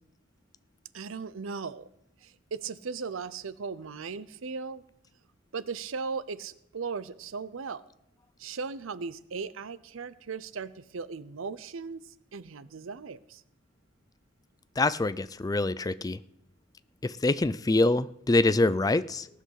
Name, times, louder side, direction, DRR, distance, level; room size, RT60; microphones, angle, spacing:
voice 1, 0.9-1.9 2.2-4.8 5.5-7.8 8.4-12.0 12.3-13.4, right 5 dB, 85° right, 16 dB, 0.6 m, -37 dB
voice 2, 14.8-16.2 17.0-19.3, left 2 dB, 20° left, 15 dB, 0.4 m, -25 dB
17.5 x 7.7 x 6.5 m, 0.78 s
head